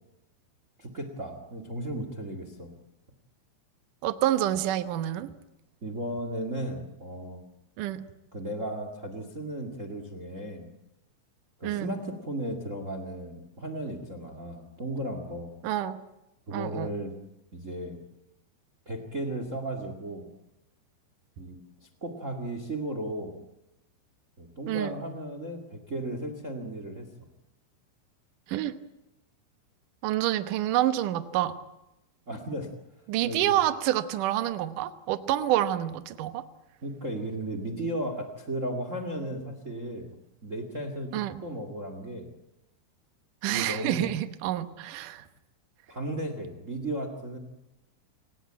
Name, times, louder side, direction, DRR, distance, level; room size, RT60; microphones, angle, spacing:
voice 1, 0.8-2.7 5.8-7.4 8.3-10.7 11.6-15.6 16.5-17.1 17.5-18.0 18.8-20.3 21.4-23.4 24.4-27.3 32.3-32.7 33.2-33.4 36.8-40.2 40.4-42.3 43.5-44.1 45.9-47.4, right 1 dB, 55° right, 8 dB, 0.8 m, -35 dB
voice 2, 4.0-5.3 7.8-8.0 11.6-11.9 15.6-16.0 16.5-16.9 24.7-25.0 28.5-28.8 30.0-31.6 33.1-36.5 41.1-41.4 43.4-45.3, right 13 dB, 85° right, 11 dB, 1.8 m, -28 dB
27.5 x 18.0 x 8.9 m, 0.89 s
omnidirectional pair, 5.5 m